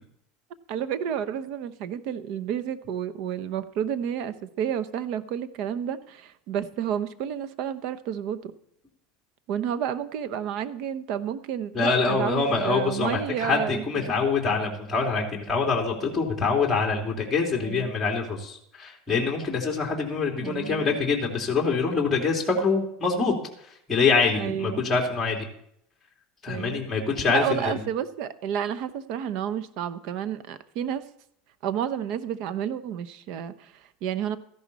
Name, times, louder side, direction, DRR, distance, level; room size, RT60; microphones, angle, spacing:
voice 1, 0.7-8.5 9.5-14.2 17.6-17.9 20.4-21.0 24.3-24.9 26.5-26.8 27.3-31.0 31.6-34.4, right 9 dB, 55° right, 12 dB, 0.9 m, -31 dB
voice 2, 11.7-23.3 23.9-25.4 26.4-27.7, left 4 dB, 10° left, -1 dB, 2.9 m, -25 dB
14.0 x 11.5 x 4.2 m, 0.70 s
supercardioid pair, 140°, 0 cm